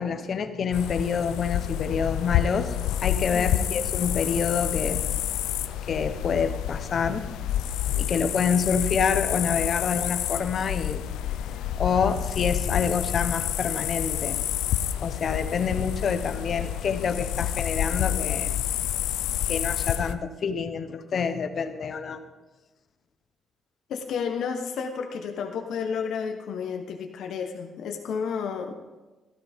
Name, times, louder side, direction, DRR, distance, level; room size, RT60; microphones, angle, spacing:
voice 1, 0.0-2.8 3.0-5.0 5.9-7.3 7.8-11.0 11.8-14.4 15.0-18.5 19.4-22.2, left 6 dB, 55° left, 8 dB, 1.0 m, -27 dB
sound 1, 0.7-20.1, left 11 dB, 90° left, 0.4 m, -29 dB
voice 2, 3.3-3.8 23.9-28.8, left 6 dB, 75° left, 4 dB, 1.1 m, -31 dB
13.5 x 12.5 x 3.6 m, 1.2 s
cardioid pair, 90°, 0 cm